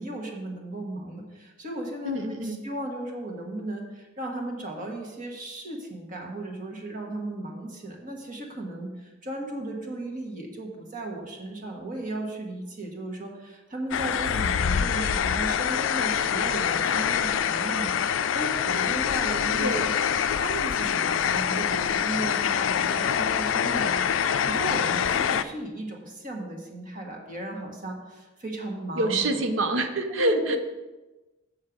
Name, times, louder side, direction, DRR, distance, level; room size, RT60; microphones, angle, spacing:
voice 1, 0.0-19.8 20.3-29.4 30.1-30.5, right 1 dB, 45° right, 1 dB, 1.5 m, -35 dB
voice 2, 2.0-2.6 19.6-20.0 28.9-30.6, right 2 dB, 75° right, 7 dB, 0.7 m, -26 dB
sound 1, 13.9-25.4, left 8 dB, 75° left, 0.4 m, -25 dB
7.5 x 6.6 x 5.0 m, 1.1 s
head